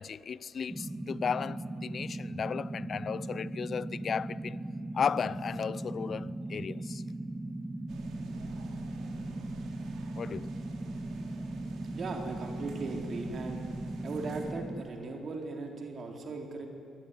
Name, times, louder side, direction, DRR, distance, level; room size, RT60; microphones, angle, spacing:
voice 1, 0.0-4.6 4.9-7.0 10.2-10.5, left 6 dB, 50° left, 0.6 m, -35 dB
sound 1, 0.7-14.8, right 1 dB, 15° right, 1.8 m, -38 dB
sound 2, 7.9-14.5, right 4 dB, 75° right, 3.8 m, -50 dB
voice 2, 11.9-13.6 14.0-16.7, right 3 dB, 50° right, 3.9 m, -38 dB
25.0 x 19.5 x 9.7 m
cardioid pair, 90°, 0 cm